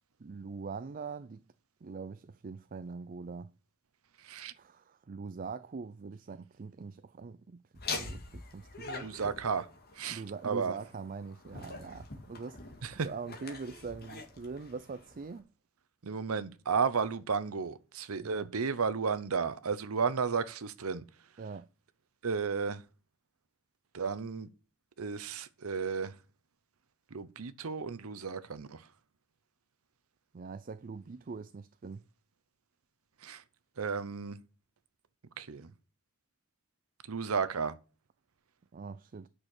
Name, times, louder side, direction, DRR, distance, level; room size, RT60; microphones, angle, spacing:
voice 1, 0.2-1.4 1.8-3.5 4.6-9.1 10.1-12.6 12.9-15.5 18.2-18.5 21.4-21.7 30.3-32.0 38.7-39.3, right 4 dB, 40° right, 0.4 m, -43 dB
Laughter, 7.7-15.4, left 3 dB, 45° left, 2.1 m, -44 dB
voice 2, 9.0-9.7 10.0-10.8 12.8-13.1 16.0-21.0 22.2-22.8 23.9-24.5 25.0-26.1 27.1-28.8 33.2-33.4 33.8-34.4 35.4-35.7 37.1-37.8, right 5 dB, 85° right, 0.7 m, -33 dB
8.8 x 6.4 x 6.6 m
head